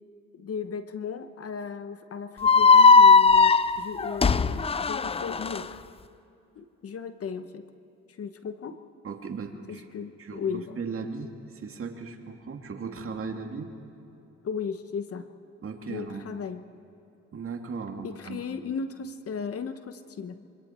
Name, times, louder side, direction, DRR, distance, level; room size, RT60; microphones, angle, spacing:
voice 1, 0.3-5.8 6.5-7.6 8.2-8.8 9.7-10.8 14.4-15.3 15.9-16.6 18.0-20.5, left 6 dB, 50° left, 9 dB, 1.1 m, -36 dB
sound 1, 2.4-5.6, left 4 dB, 20° left, 0.4 m, -18 dB
voice 2, 9.0-9.9 10.2-13.7 15.6-16.3 17.3-18.4, right 5 dB, 45° right, 3 dB, 2.2 m, -37 dB
26.0 x 24.5 x 4.4 m, 2.9 s
cardioid pair, 90°, 30 cm